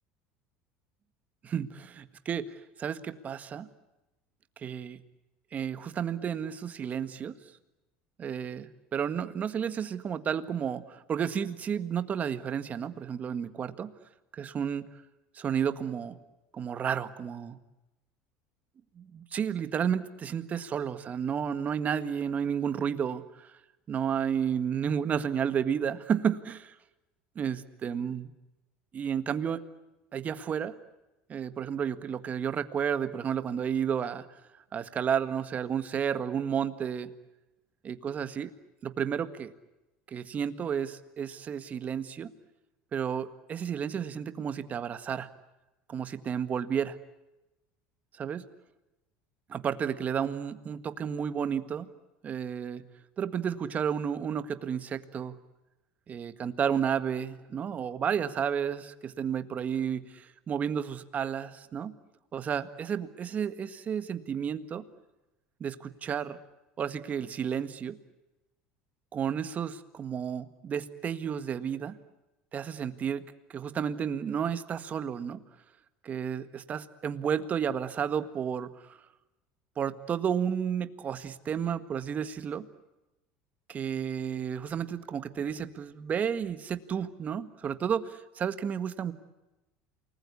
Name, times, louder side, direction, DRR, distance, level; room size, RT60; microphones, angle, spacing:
voice 1, 1.4-3.7 4.6-5.0 5.5-7.3 8.2-13.9 14.3-14.9 15.3-16.2 16.5-17.6 18.9-23.5 23.9-26.7 27.3-28.3 28.9-29.6 30.1-30.7 31.3-34.4 34.7-37.1 37.8-38.5 38.8-39.5 40.1-42.3 42.9-45.3 45.9-47.0 48.1-48.4 49.5-51.9 52.2-52.8 53.2-55.4 56.1-61.9 62.3-64.8 65.6-66.4 66.8-68.0 69.1-72.0 72.5-73.2 73.5-75.4 76.0-79.0 79.8-82.7 83.7-89.1, right 8 dB, 30° right, 11 dB, 1.7 m, -32 dB
29.0 x 20.5 x 9.7 m, 1.0 s
supercardioid pair, 125°, 5 cm